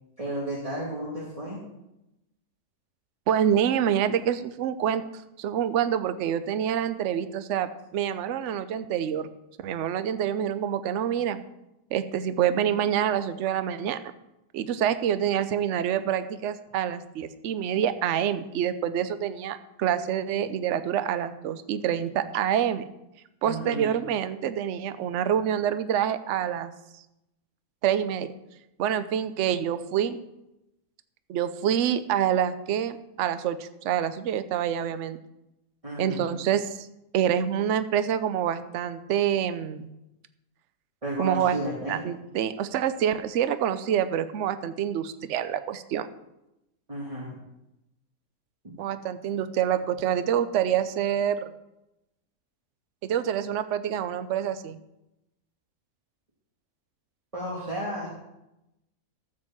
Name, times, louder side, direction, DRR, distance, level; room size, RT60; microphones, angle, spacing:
voice 1, 0.2-1.6 23.4-23.9 35.8-36.2 41.0-42.0 46.9-47.3 57.3-58.1, right 1 dB, 25° right, -6 dB, 2.3 m, -33 dB
voice 2, 3.3-5.0 5.4-9.3 9.6-11.4 11.9-14.0 14.5-22.8 23.4-26.7 27.8-28.3 28.8-30.2 31.3-35.2 36.0-36.9 37.1-39.9 41.2-41.6 41.9-46.1 48.8-51.5 53.0-54.8, right 9 dB, 65° right, 12 dB, 0.9 m, -26 dB
13.0 x 5.1 x 7.2 m, 0.91 s
omnidirectional pair, 1.5 m